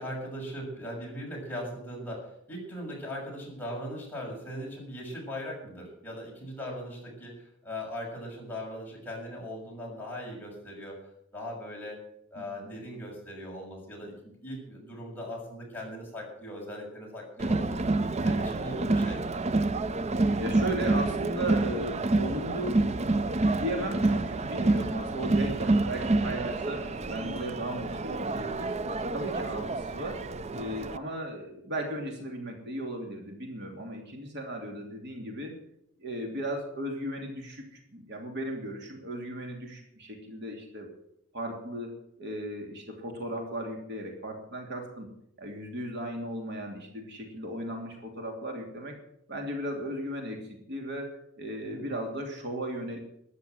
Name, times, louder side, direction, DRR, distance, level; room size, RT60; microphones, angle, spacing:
voice 1, 0.0-12.0 12.3-17.8 18.2-19.4 26.8-27.1 51.6-51.9, equal, 10° left, -3 dB, 6.7 m, -39 dB
voice 2, 12.3-12.7 20.4-23.0 23.3-28.8 29.1-30.2 30.5-35.6 36.0-40.9 41.3-45.1 45.4-49.0 49.3-53.0, right 1 dB, 55° right, 2 dB, 2.9 m, -36 dB
Crowd, 17.4-31.0, right 2 dB, 35° right, 0.6 m, -28 dB
13.5 x 10.5 x 7.7 m, 0.75 s
head